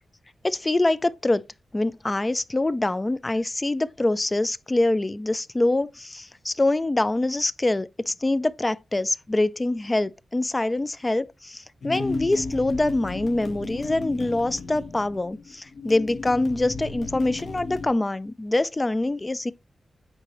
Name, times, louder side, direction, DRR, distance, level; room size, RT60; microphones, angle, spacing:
voice 1, 0.4-1.4 1.7-19.5, left 2 dB, 20° left, 0.4 m, -25 dB
sound 1, 11.8-17.9, left 3 dB, 65° left, 1.2 m, -34 dB
8.8 x 4.7 x 3.0 m
wide cardioid pair, 135°, 0 cm